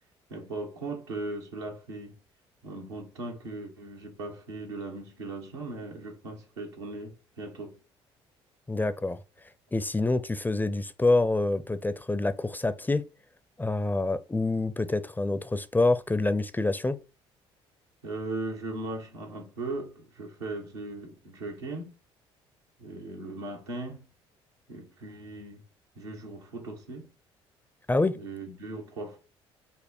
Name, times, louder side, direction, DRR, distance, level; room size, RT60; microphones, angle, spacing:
voice 1, 0.3-2.2 2.6-7.8 18.0-21.9 22.8-24.1 24.7-25.6 26.0-27.1 28.1-29.2, right 2 dB, 85° right, 1.1 m, -38 dB
voice 2, 8.7-9.2 9.7-13.0 13.6-17.0 27.9-28.2, left 2 dB, 15° left, 0.4 m, -26 dB
5.3 x 2.1 x 4.2 m
hypercardioid pair, 50°, 14 cm